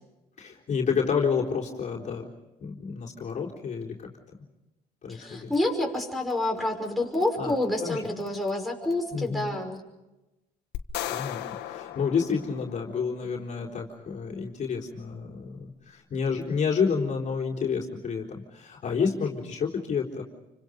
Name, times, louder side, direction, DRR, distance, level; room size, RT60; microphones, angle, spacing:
voice 1, 0.4-2.3 2.6-4.1 5.0-5.5 7.4-7.5 7.8-8.0 9.1-9.6 11.1-20.2, left 6 dB, 45° left, -1 dB, 4.0 m, -29 dB
voice 2, 5.1-9.8, left 1 dB, ahead, -1 dB, 5.8 m, -28 dB
sound 1, 10.7-13.1, left 13 dB, 85° left, 1.6 m, -36 dB
28.5 x 25.0 x 5.3 m, 1.0 s
cardioid pair, 110°, 17 cm